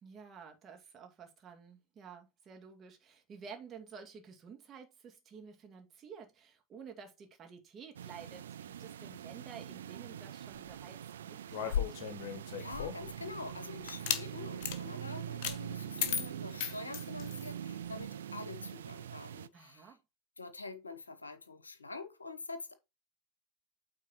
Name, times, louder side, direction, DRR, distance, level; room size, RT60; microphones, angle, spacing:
voice 1, 0.0-11.8 19.5-20.0, right 6 dB, 30° right, 2.3 m, -51 dB
sound 1, 7.9-19.5, right 10 dB, 70° right, 0.4 m, -44 dB
sound 2, 11.5-13.1 13.9-14.2 14.6-14.8 15.4-15.6 16.0-17.5, left 8 dB, 50° left, 1.5 m, -35 dB
voice 2, 12.6-19.9 20.4-22.7, left 3 dB, 85° left, 0.9 m, -46 dB
8.9 x 3.9 x 4.3 m
figure-of-eight pair, 85°, 0 cm